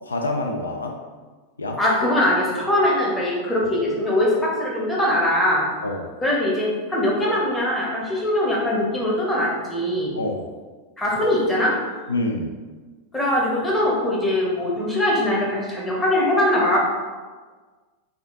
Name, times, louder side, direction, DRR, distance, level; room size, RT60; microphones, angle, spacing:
voice 1, 0.0-0.9 1.6-1.8 5.8-6.1 10.1-10.5 12.1-12.5, left 2 dB, 75° left, 2 dB, 0.4 m, -26 dB
voice 2, 1.8-5.7 6.2-10.1 11.0-11.7 13.1-16.8, left 1 dB, 10° left, -5 dB, 1.2 m, -21 dB
4.9 x 2.4 x 3.7 m, 1.4 s
figure-of-eight pair, 90°, 0 cm